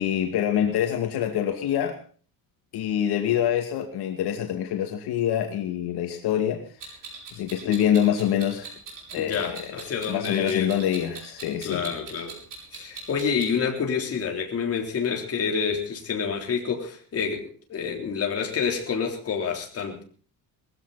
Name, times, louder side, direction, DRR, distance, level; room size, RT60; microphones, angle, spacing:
voice 1, 0.0-2.0 2.7-6.6 7.3-8.7 9.1-9.8 10.1-11.9, left 10 dB, 75° left, 4 dB, 2.5 m, -25 dB
Clock, 6.8-13.5, right 4 dB, 55° right, 7.0 m, -41 dB
voice 2, 9.1-10.7 11.6-12.4 12.7-20.0, left 6 dB, 35° left, 2 dB, 3.6 m, -28 dB
20.0 x 15.5 x 4.1 m, 0.41 s
cardioid pair, 170°, 39 cm